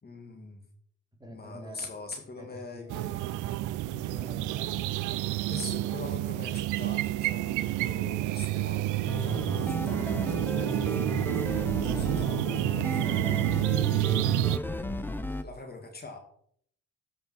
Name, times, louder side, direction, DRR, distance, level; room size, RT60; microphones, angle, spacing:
voice 1, 0.0-0.6 1.3-3.2 5.4-11.5 11.9-13.6 14.6-16.2, left 3 dB, 30° left, 3 dB, 2.0 m, -43 dB
voice 2, 1.2-1.9 2.4-3.4 3.9-5.4 11.8-12.9, right 1 dB, 15° right, 1 dB, 2.9 m, -47 dB
sound 1, 2.9-14.6, right 16 dB, 90° right, 0.5 m, -29 dB
sound 2, 9.1-15.4, left 1 dB, 5° left, 0.8 m, -34 dB
13.5 x 5.4 x 4.6 m, 0.63 s
cardioid pair, 90°, 30 cm